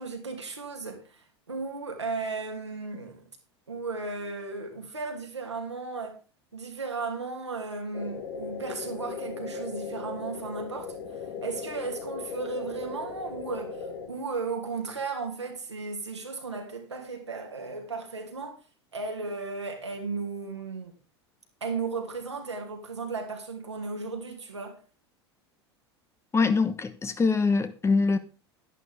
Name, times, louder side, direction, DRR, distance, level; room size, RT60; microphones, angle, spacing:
voice 1, 0.0-3.2 3.7-6.2 6.5-11.0 11.4-18.6 18.9-20.9 21.6-24.8, right 4 dB, 85° right, 2.6 m, -35 dB
sound 1, 7.9-14.1, left 5 dB, 65° left, 2.2 m, -37 dB
voice 2, 26.3-28.2, left 4 dB, 20° left, 1.2 m, -24 dB
11.0 x 11.0 x 3.6 m
figure-of-eight pair, 80°, 14 cm